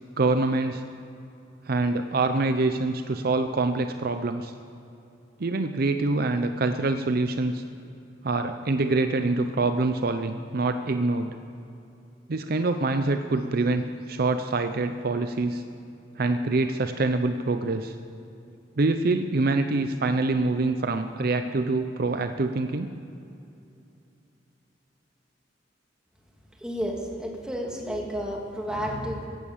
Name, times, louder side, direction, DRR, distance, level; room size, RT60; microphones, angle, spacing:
voice 1, 0.2-0.8 1.7-4.5 5.4-7.6 8.2-11.3 12.3-15.6 16.2-17.9 18.8-22.9, right 3 dB, 55° right, 8 dB, 0.6 m, -25 dB
voice 2, 26.6-29.3, equal, 5° right, -1 dB, 2.3 m, -31 dB
15.5 x 11.0 x 7.2 m, 2.7 s
head